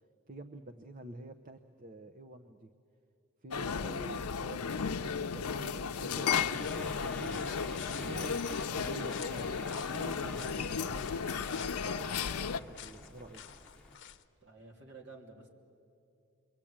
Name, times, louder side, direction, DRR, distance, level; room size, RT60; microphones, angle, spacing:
voice 1, 0.3-2.7 3.4-7.4 7.9-11.3 11.8-13.4, right 2 dB, 35° right, 8 dB, 0.8 m, -48 dB
sound 1, 3.5-12.6, left 6 dB, 85° left, 0.6 m, -34 dB
sound 2, 6.3-14.0, left 1 dB, 5° left, 1.1 m, -47 dB
sound 3, 6.5-14.2, left 9 dB, 50° left, 0.8 m, -50 dB
voice 2, 14.4-15.5, right 3 dB, 50° right, 0 dB, 3.2 m, -52 dB
27.5 x 23.5 x 8.8 m, 2.6 s
head